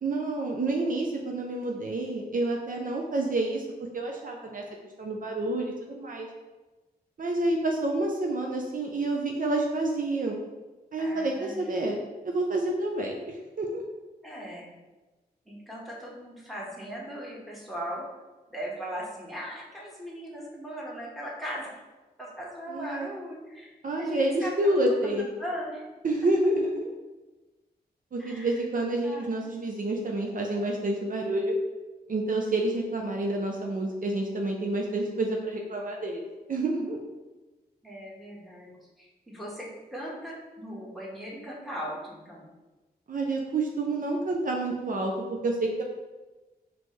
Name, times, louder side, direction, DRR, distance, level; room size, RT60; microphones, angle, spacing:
voice 1, 0.0-3.6 3.9-4.6 5.0-6.3 7.2-10.4 10.9-13.8 22.7-23.1 23.8-25.3 26.0-26.9 28.1-31.6 32.1-36.2 36.5-37.0 43.1-45.8, right 2 dB, 55° right, 1 dB, 0.5 m, -28 dB
voice 2, 11.0-11.7 14.2-14.8 15.5-18.0 18.5-21.7 22.2-23.7 24.0-25.8 28.2-28.6 29.0-29.3 37.8-42.5, equal, ahead, -5 dB, 1.4 m, -39 dB
4.1 x 2.9 x 3.2 m, 1.2 s
cardioid pair, 50°, 17 cm